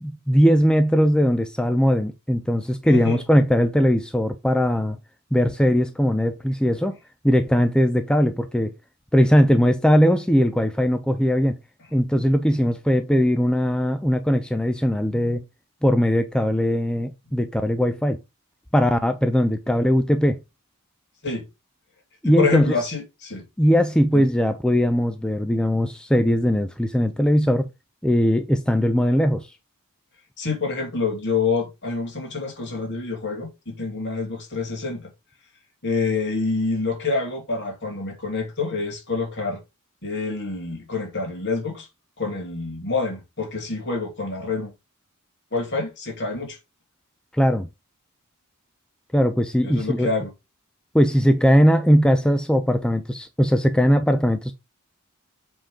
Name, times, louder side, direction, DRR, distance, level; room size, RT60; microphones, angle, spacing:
voice 1, 0.0-5.0 5.3-7.0 7.2-8.7 9.1-11.5 11.9-15.4 15.8-18.2 18.7-20.4 22.2-22.7 23.6-27.7 28.0-29.5 47.3-47.7 49.1-50.1 50.9-54.5, equal, 5° left, 0.5 m, -19 dB
voice 2, 2.9-3.2 21.2-21.4 22.2-23.4 24.1-24.2 30.4-35.1 35.8-39.6 40.0-41.9 42.2-44.7 45.5-46.6 49.6-50.3, left 4 dB, 50° left, 2.9 m, -27 dB
7.7 x 3.8 x 5.0 m
head